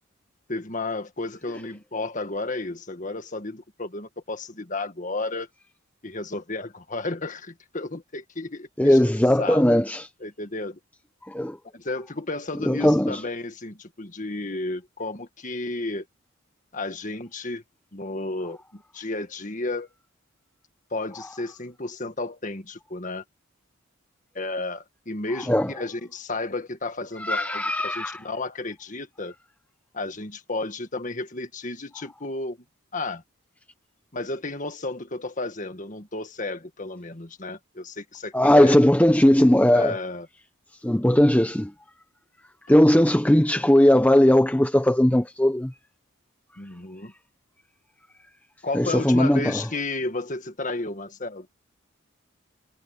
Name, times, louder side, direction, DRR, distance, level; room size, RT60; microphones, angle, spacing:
voice 1, 0.5-5.5 6.0-9.0 9.4-9.6 10.2-10.8 11.7-16.1 16.7-17.6 17.9-19.9 20.9-23.2 24.4-29.3 29.9-32.6 32.9-33.2 34.1-38.8 39.7-40.3 46.6-47.1 48.6-51.5, left 2 dB, 40° left, 1.8 m, -32 dB
voice 2, 8.8-10.1 11.3-11.6 12.6-13.2 25.5-25.7 27.2-28.2 38.3-39.9 40.8-41.7 42.7-45.7 48.7-49.6, left 1 dB, 5° left, 0.7 m, -18 dB
head